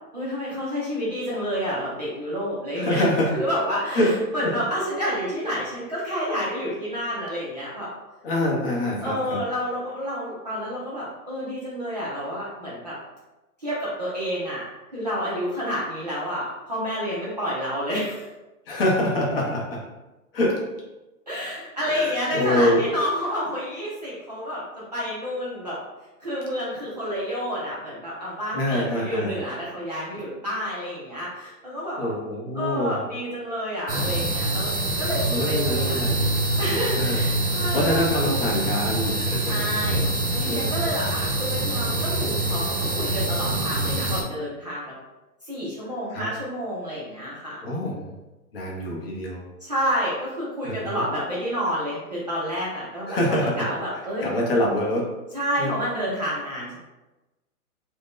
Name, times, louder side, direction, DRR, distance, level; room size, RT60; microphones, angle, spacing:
voice 1, 0.1-7.9 9.0-13.0 13.6-14.6 14.9-18.3 21.3-25.8 26.2-32.2 32.5-34.7 35.0-36.1 36.6-38.1 39.5-40.0 40.3-44.9 45.4-48.2 49.6-54.4 55.3-56.8, equal, 30° right, -9 dB, 0.4 m, -29 dB
voice 2, 2.8-3.3 3.9-4.5 8.2-9.4 18.7-19.8 20.3-20.6 21.9-22.8 28.5-29.4 32.0-33.0 35.3-36.2 37.0-37.2 37.7-39.7 40.4-40.8 46.1-46.3 47.6-48.0 48.5-49.4 50.6-51.0 53.0-53.7 54.2-55.1 55.6-55.8, left 1 dB, 40° left, -2 dB, 0.6 m, -25 dB
sound 1, 33.9-44.2, right 1 dB, 80° right, 1.1 m, -25 dB
2.5 x 2.1 x 3.5 m, 1.1 s
hypercardioid pair, 165°, 45 cm